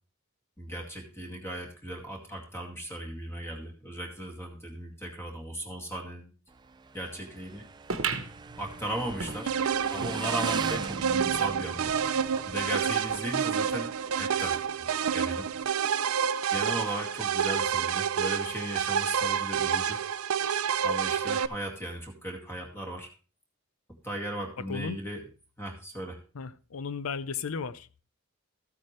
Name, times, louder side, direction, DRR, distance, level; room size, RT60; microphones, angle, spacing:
voice 1, 0.6-6.3 6.9-7.7 8.6-9.5 9.9-11.9 12.5-14.9 15.1-15.5 16.5-20.0 20.8-23.1 24.0-25.2 25.6-26.2, right 1 dB, 10° left, 2.2 m, -37 dB
Motorcycle / Engine, 6.5-15.7, right 4 dB, 20° right, 0.4 m, -41 dB
sound 1, 7.9-10.9 11.3-11.4 11.6-11.7 12.5-12.6, right 5 dB, 70° right, 1.1 m, -36 dB
sound 2, 9.5-21.5, right 7 dB, 85° right, 0.5 m, -28 dB
voice 2, 24.6-25.0 26.3-28.0, left 5 dB, 85° left, 0.6 m, -35 dB
14.0 x 8.5 x 3.2 m
head